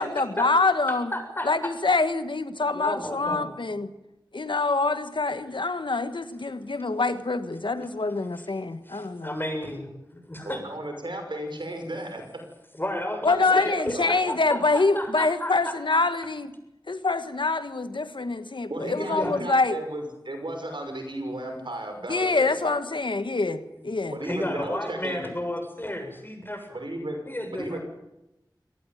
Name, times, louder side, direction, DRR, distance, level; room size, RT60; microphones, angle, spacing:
voice 1, 0.0-1.1 1.4-3.9 4.3-9.3 13.2-16.5 16.9-19.8 22.1-24.2, left 3 dB, 85° left, 10 dB, 1.4 m, -25 dB
voice 2, 0.9-1.5 2.7-3.5 8.3-8.4 8.8-10.6 12.8-15.7 19.0-19.3 24.2-26.6 27.2-27.8, left 1 dB, 25° left, 5 dB, 6.9 m, -32 dB
voice 3, 10.4-12.4 13.3-14.3 18.7-22.8 24.1-25.2 26.7-27.2 27.5-27.8, right 1 dB, 75° right, 5 dB, 6.0 m, -34 dB
25.0 x 18.5 x 9.2 m, 0.92 s
wide cardioid pair, 45°, 8 cm